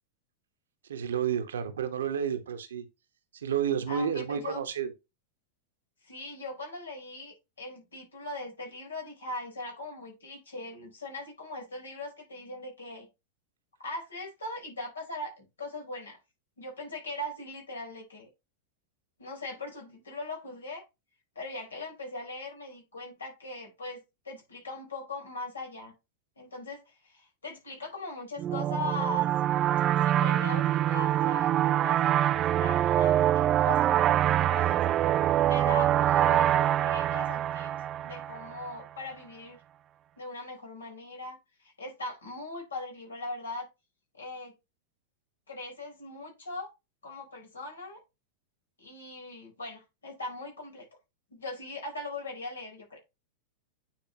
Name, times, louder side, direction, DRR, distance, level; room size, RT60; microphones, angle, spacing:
voice 1, 0.9-2.8 3.3-4.9, right 8 dB, 65° right, 1.2 m, -30 dB
voice 2, 3.9-4.6 6.0-13.1 13.8-16.2 16.6-18.3 19.2-20.8 21.3-25.9 26.4-29.3 30.0-34.9 35.5-37.7 38.0-39.6 40.2-43.7 44.1-44.5 45.5-46.7 47.0-48.0 48.8-50.8 51.3-53.0, left 2 dB, 75° left, 4.3 m, -40 dB
sound 1, 28.4-38.7, right 12 dB, 30° right, 0.3 m, -25 dB
9.3 x 5.0 x 3.0 m
figure-of-eight pair, 90°, 0 cm